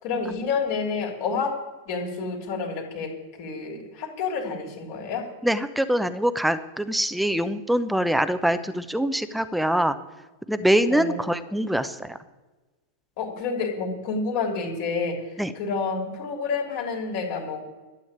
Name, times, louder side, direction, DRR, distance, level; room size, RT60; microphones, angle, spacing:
voice 1, 0.0-1.5 1.8-3.1 3.4-5.2 10.9-11.2 13.2-15.2 15.5-17.6, left 4 dB, 45° left, 1 dB, 3.1 m, -29 dB
voice 2, 5.4-10.0 10.5-12.2 15.4-15.5, right 1 dB, ahead, 12 dB, 0.8 m, -24 dB
12.0 x 8.8 x 8.5 m, 1.2 s
figure-of-eight pair, 90°, 0 cm